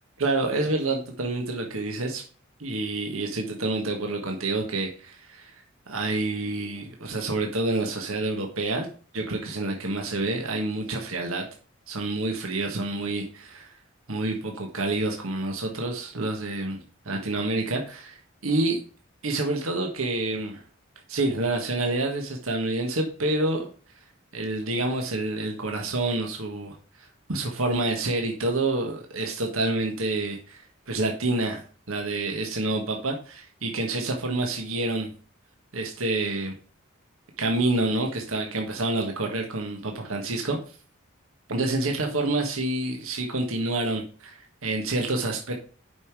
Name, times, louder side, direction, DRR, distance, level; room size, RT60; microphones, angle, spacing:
voice 1, 0.2-2.2 2.6-5.5 5.9-8.9 9.1-11.5 11.9-13.8 14.1-18.8 19.2-20.6 21.1-23.7 24.3-35.1 35.7-36.6 37.4-40.8 41.5-45.6, right 2 dB, 90° right, 3 dB, 1.6 m, -28 dB
8.1 x 5.7 x 4.8 m, 0.39 s
head